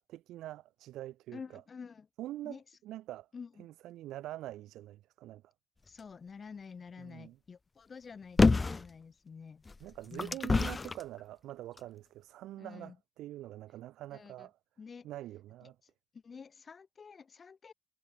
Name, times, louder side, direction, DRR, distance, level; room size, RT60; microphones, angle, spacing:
voice 1, 0.1-1.6 2.2-2.6 2.8-3.3 3.6-5.4 7.0-7.3 9.8-14.5 15.0-15.7, right 14 dB, 85° right, 1.0 m, -45 dB
voice 2, 1.3-2.1 2.4-2.6 3.3-3.7 5.9-9.6 10.1-10.4 12.6-13.0 14.1-14.5 14.8-15.1 15.6-17.7, left 5 dB, 40° left, 6.5 m, -49 dB
sound 1, 8.4-8.9 9.7-11.0 11.8-11.9, left 3 dB, 25° left, 0.4 m, -26 dB
cardioid pair, 90°, 0 cm